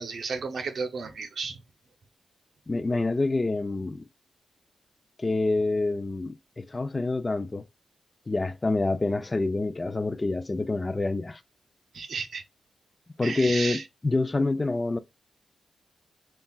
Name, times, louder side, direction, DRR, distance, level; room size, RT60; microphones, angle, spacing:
voice 1, 0.0-1.6 11.9-12.4 13.2-13.8, right 4 dB, 70° right, 0.7 m, -33 dB
voice 2, 2.7-4.0 5.2-7.6 8.3-11.4 13.2-15.0, left 2 dB, 30° left, 0.4 m, -27 dB
7.0 x 2.3 x 2.3 m
cardioid pair, 70°, 0 cm